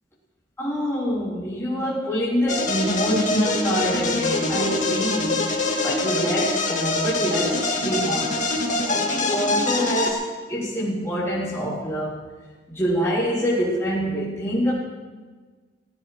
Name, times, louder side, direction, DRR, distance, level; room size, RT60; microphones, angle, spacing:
voice 1, 0.6-8.5 8.8-12.3 12.7-14.7, equal, 15° left, -11 dB, 3.7 m, -26 dB
sound 1, 2.5-10.1, left 2 dB, 45° left, 2.3 m, -24 dB
19.0 x 16.0 x 3.3 m, 1.4 s
head